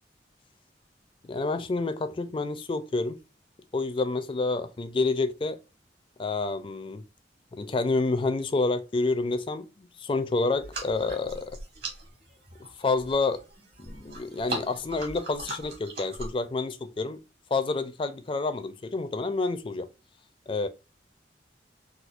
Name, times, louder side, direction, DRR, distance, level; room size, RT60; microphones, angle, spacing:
voice 1, 1.2-3.2 3.7-5.6 6.2-7.0 7.5-11.6 12.8-13.4 13.8-17.2 17.5-19.9 20.5-20.7, left 3 dB, 30° left, 0.4 m, -28 dB
sound 1, 10.5-16.5, right 2 dB, 60° right, 1.6 m, -40 dB
4.2 x 2.3 x 2.4 m
head